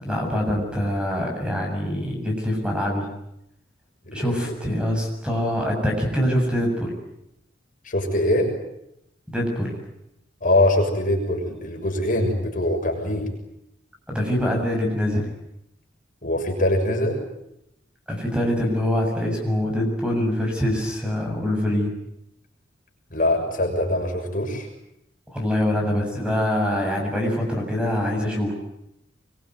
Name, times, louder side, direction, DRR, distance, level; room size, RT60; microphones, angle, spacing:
voice 1, 0.0-3.1 4.1-6.9 9.3-9.8 14.1-15.3 18.1-21.9 25.3-28.5, left 1 dB, 5° right, 1 dB, 7.3 m, -24 dB
voice 2, 4.1-4.5 7.8-8.5 10.4-13.3 16.2-17.2 23.1-24.7, left 1 dB, 45° left, 1 dB, 6.6 m, -23 dB
25.0 x 23.0 x 9.4 m, 0.81 s
head